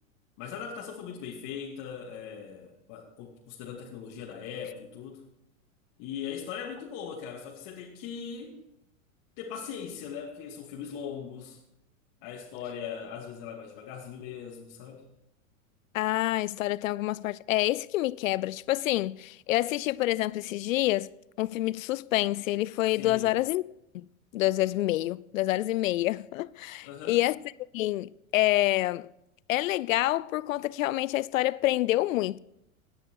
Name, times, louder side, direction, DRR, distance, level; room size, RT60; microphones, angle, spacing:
voice 1, 0.4-5.2 6.0-8.6 9.4-11.6 12.2-15.1 22.9-23.4 26.8-27.2, left 7 dB, 50° left, 2.7 m, -40 dB
voice 2, 15.9-21.1 21.4-23.6 23.9-24.0 24.3-27.4 27.7-29.1 29.5-32.4, left 16 dB, 80° left, 0.6 m, -27 dB
17.5 x 9.9 x 4.8 m
hypercardioid pair, 115°, 40 cm